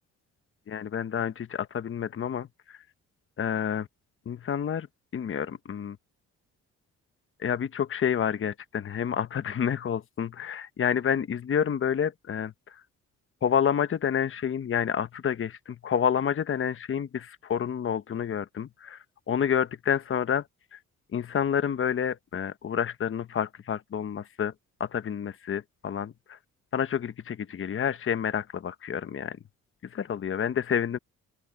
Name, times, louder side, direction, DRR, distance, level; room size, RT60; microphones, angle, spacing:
voice 1, 0.7-2.5 3.4-3.9 4.3-4.9 5.1-6.0 7.4-12.5 13.4-19.0 19.3-20.4 20.7-20.8 21.1-24.5 24.8-26.4 26.7-29.4 29.9-31.0, left 8 dB, 45° left, 1.1 m, -29 dB
open air
cardioid pair, 90°, 30 cm